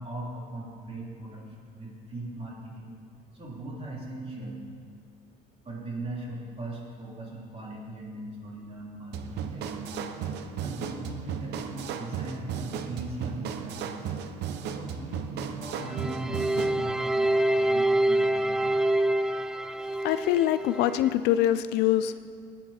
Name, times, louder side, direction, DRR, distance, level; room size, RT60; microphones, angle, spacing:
voice 1, 0.0-2.9 3.3-4.7 5.6-10.0 10.5-14.1 14.7-18.8, right 2 dB, 35° right, -3 dB, 3.6 m, -39 dB
sound 1, 9.1-16.8, right 7 dB, 80° right, 0.8 m, -35 dB
sound 2, 15.9-21.1, right 1 dB, 5° right, 0.3 m, -26 dB
voice 2, 20.0-22.2, left 12 dB, 90° left, 13 dB, 0.5 m, -24 dB
18.0 x 9.2 x 4.4 m, 2.1 s
cardioid pair, 110°, 17 cm